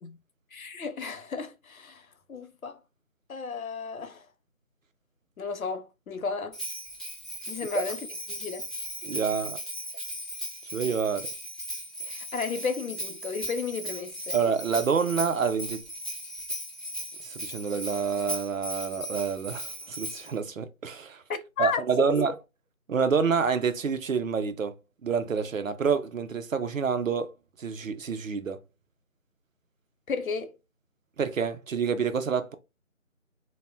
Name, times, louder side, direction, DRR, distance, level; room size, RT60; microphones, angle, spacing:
voice 1, 0.5-2.8 3.3-4.3 5.4-6.6 7.5-8.7 12.1-14.4 21.3-22.3 30.1-30.6, left 5 dB, 80° left, 0.6 m, -33 dB
Bell, 6.5-20.3, equal, ahead, 0.5 m, -37 dB
voice 2, 9.0-9.6 10.7-11.3 14.3-15.8 17.2-21.2 21.6-22.3 22.9-24.7 25.0-27.3 27.6-28.6 31.2-32.6, right 6 dB, 70° right, 0.5 m, -27 dB
2.1 x 2.1 x 3.2 m
figure-of-eight pair, 175°, 41 cm